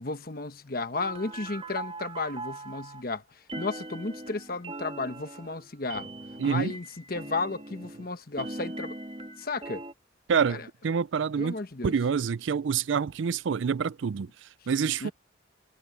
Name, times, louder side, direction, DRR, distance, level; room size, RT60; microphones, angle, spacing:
voice 1, 0.0-6.1 6.4-9.0 9.4-9.8 10.5-10.7 11.4-11.9 15.0-15.1, left 3 dB, 50° left, 1.2 m, -34 dB
sound 1, 0.9-3.0 3.5-8.1 8.4-9.9, right 2 dB, 30° right, 2.7 m, -40 dB
voice 2, 6.4-6.7 10.3-11.6 11.8-14.3 14.7-15.1, right 6 dB, 75° right, 0.4 m, -27 dB
head